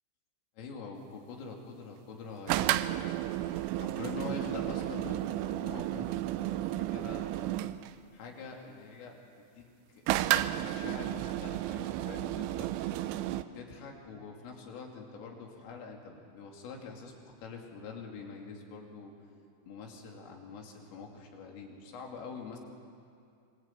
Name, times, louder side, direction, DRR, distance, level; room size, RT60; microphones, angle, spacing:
voice 1, 0.6-3.2 3.8-6.2 6.5-7.4 8.1-9.2 9.5-12.7 13.5-19.1 19.7-22.6, left 4 dB, 75° left, 1 dB, 5.4 m, -45 dB
sound 1, 2.5-7.9 10.1-13.4, right 14 dB, 80° right, 3.0 m, -32 dB
25.5 x 23.0 x 9.2 m, 2.4 s
omnidirectional pair, 6.0 m